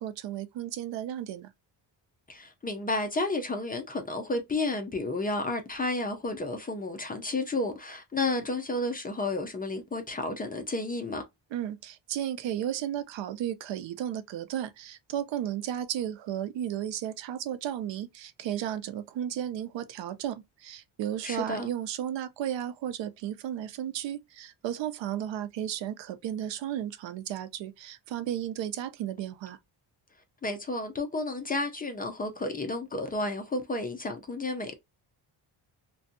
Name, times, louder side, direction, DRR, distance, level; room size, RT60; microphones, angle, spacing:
voice 1, 0.0-1.5 11.5-29.6, right 10 dB, 80° right, 0.6 m, -34 dB
voice 2, 2.3-11.2 21.2-21.7 30.4-34.8, left 2 dB, 20° left, 0.4 m, -31 dB
2.6 x 2.2 x 2.5 m
cardioid pair, 135°, 44 cm